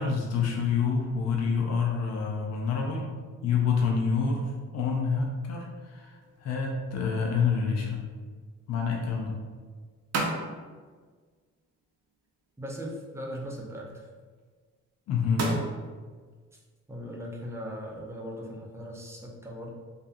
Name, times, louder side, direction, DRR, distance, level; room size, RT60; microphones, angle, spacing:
voice 1, 0.0-3.1 3.4-4.5 4.7-6.1 6.4-8.0 8.7-9.4 15.1-15.5, left 5 dB, 55° left, -1 dB, 0.5 m, -27 dB
sound 1, 6.2-18.9, right 2 dB, 55° right, 0.6 m, -41 dB
voice 2, 12.6-14.1 16.5-16.6 16.9-19.7, equal, 10° right, -2 dB, 0.4 m, -39 dB
2.6 x 2.4 x 2.4 m, 1.5 s
cardioid pair, 90°, 30 cm